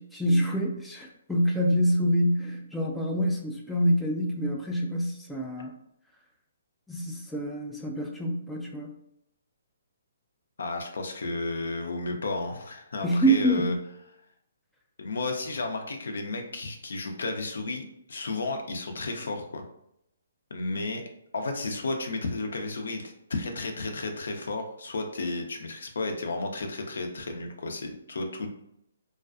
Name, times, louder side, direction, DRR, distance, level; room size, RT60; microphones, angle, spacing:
voice 1, 0.0-5.7 6.9-8.9 13.0-13.8, right 1 dB, 5° left, -1 dB, 0.3 m, -26 dB
voice 2, 10.6-13.7 15.0-19.6 20.5-21.0 21.3-28.5, left 3 dB, 70° left, 4 dB, 0.5 m, -33 dB
2.3 x 2.3 x 2.4 m, 0.77 s
hypercardioid pair, 140°, 0 cm